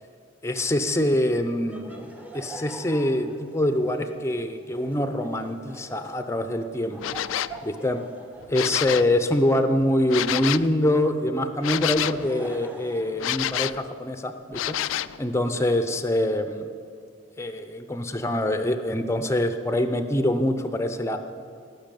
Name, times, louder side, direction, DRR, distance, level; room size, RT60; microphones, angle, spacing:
voice 1, 0.4-7.2 7.6-8.0 8.5-16.7 17.4-21.2, left 1 dB, 15° left, 8 dB, 0.7 m, -25 dB
Laughter, 1.7-10.8 11.6-14.0, right 1 dB, 10° right, 1.0 m, -45 dB
sound 1, 7.0-7.6 8.4-9.1 10.1-10.7 11.6-12.3 13.2-13.8 14.5-15.2, left 12 dB, 80° left, 0.3 m, -28 dB
17.0 x 6.1 x 9.0 m, 2.2 s
head